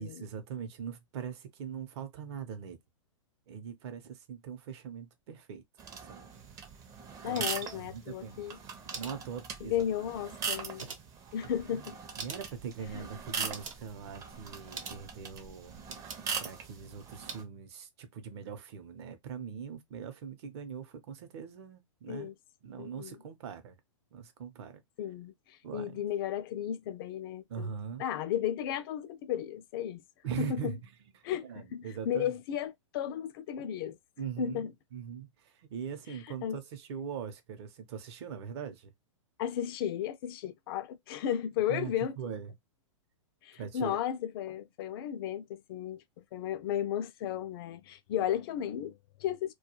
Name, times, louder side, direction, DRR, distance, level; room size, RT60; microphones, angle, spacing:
voice 1, 0.0-2.8 3.5-5.6 6.1-6.3 7.3-7.4 7.8-8.4 9.0-9.8 11.7-11.9 12.2-15.7 16.4-22.3 22.6-23.7 24.1-24.8 25.6-26.0 27.5-28.0 30.2-30.9 31.1-32.3 34.2-38.9 41.7-42.5 43.6-44.0, right 7 dB, 55° right, 0.7 m, -41 dB
sound 1, 5.8-17.4, right 6 dB, 20° right, 0.5 m, -41 dB
sound 2, 6.3-17.4, right 5 dB, 80° right, 0.9 m, -48 dB
voice 2, 7.2-8.6 9.6-10.9 11.3-12.0 12.9-13.1 22.1-22.3 22.8-23.2 25.0-27.7 28.0-30.0 30.4-30.8 31.2-34.0 34.4-34.7 36.1-36.6 39.4-42.2 43.4-46.0 46.3-49.5, left 10 dB, 45° left, 0.4 m, -34 dB
2.3 x 2.2 x 2.8 m
hypercardioid pair, 130°, 17 cm